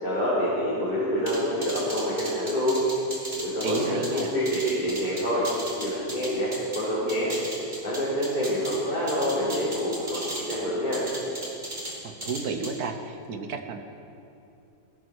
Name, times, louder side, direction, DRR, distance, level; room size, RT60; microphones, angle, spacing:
voice 1, 0.0-2.8 3.4-5.5 5.8-6.5 6.8-7.6 7.8-11.0, equal, 30° left, -11 dB, 3.9 m, -27 dB
sound 1, 1.3-6.8 7.1-8.8 9.1-10.6 10.9-11.9 12.2-12.7, right 1 dB, 30° right, 3.0 m, -36 dB
voice 2, 3.6-4.3 12.0-13.8, right 4 dB, 75° right, 7 dB, 1.6 m, -32 dB
17.0 x 17.0 x 4.8 m, 2.8 s
omnidirectional pair, 1.6 m